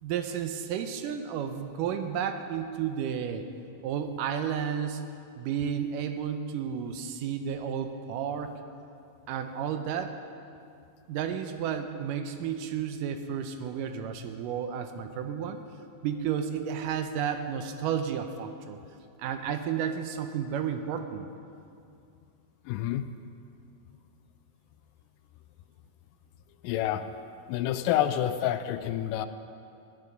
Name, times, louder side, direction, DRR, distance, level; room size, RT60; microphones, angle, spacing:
voice 1, 0.0-3.4 3.8-5.0 5.4-8.5 9.3-10.2 11.1-15.6 16.0-18.8 19.2-21.3, right 8 dB, 80° right, 7 dB, 2.2 m, -32 dB
voice 2, 22.7-23.1 26.6-27.0 27.5-29.3, left 11 dB, 80° left, 10 dB, 2.1 m, -28 dB
16.0 x 10.5 x 5.2 m, 2.5 s
omnidirectional pair, 4.0 m